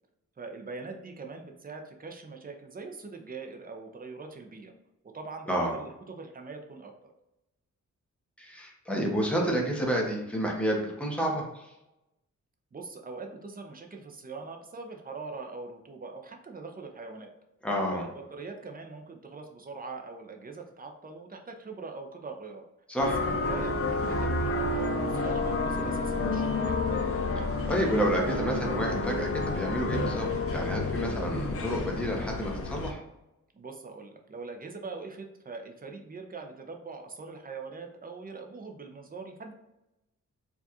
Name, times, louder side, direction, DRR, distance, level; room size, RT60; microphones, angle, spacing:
voice 1, 0.4-4.7 5.1-6.9 12.7-17.3 17.9-22.6 23.3-26.9 33.5-39.5, right 4 dB, 30° right, 3 dB, 0.6 m, -42 dB
voice 2, 8.4-11.7 17.6-18.1 22.9-23.2 27.7-33.0, equal, 5° left, -1 dB, 0.9 m, -29 dB
sound 1, 23.0-32.9, left 3 dB, 50° left, 0.5 m, -30 dB
4.6 x 2.4 x 2.8 m, 0.92 s
wide cardioid pair, 125°, 30 cm